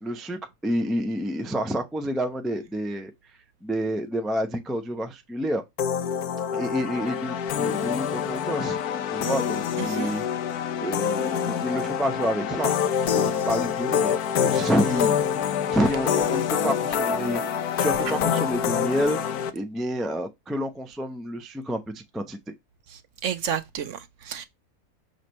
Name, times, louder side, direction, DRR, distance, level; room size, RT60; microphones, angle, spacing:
voice 1, 0.0-3.1 3.6-5.6 6.5-8.8 9.1-10.2 10.8-12.7 13.1-15.2 15.7-17.4 17.8-19.2 19.5-22.4, equal, ahead, 0.4 m, -28 dB
sound 1, 5.8-19.5, left 8 dB, 80° left, 1.2 m, -26 dB
voice 2, 9.8-10.1 23.2-24.5, right 8 dB, 65° right, 0.9 m, -31 dB
6.5 x 3.0 x 5.3 m
omnidirectional pair, 1.6 m